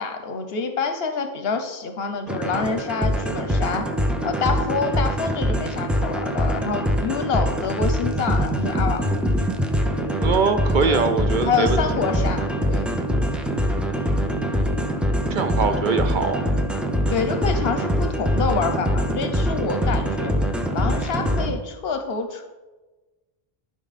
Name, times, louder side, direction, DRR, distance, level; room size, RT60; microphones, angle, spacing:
voice 1, 0.0-3.9 4.2-9.2 10.8-11.1 11.4-12.9 17.1-20.3 20.7-22.5, left 5 dB, 75° left, 7 dB, 0.9 m, -27 dB
sound 1, 2.3-21.5, equal, ahead, 0.6 m, -23 dB
voice 2, 10.2-11.8 15.3-16.5 21.4-21.6, right 5 dB, 60° right, 9 dB, 0.6 m, -23 dB
12.0 x 5.2 x 4.1 m, 1.2 s
omnidirectional pair, 1.0 m